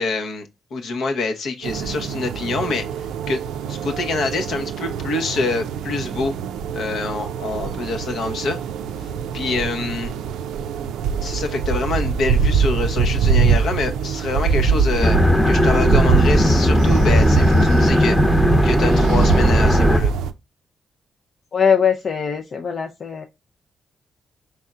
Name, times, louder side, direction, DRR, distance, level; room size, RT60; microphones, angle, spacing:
voice 1, 0.0-3.4 3.7-6.3 6.7-8.6 9.0-10.1 11.2-15.2 15.5-20.1, left 3 dB, 75° left, 0.9 m, -26 dB
sound 1, 1.6-20.3, right 6 dB, 90° right, 0.3 m, -24 dB
sound 2, 15.0-20.0, equal, 15° left, 0.9 m, -16 dB
voice 2, 21.5-23.2, left 7 dB, 55° left, 0.5 m, -21 dB
4.3 x 3.5 x 2.4 m
supercardioid pair, 60°, 0 cm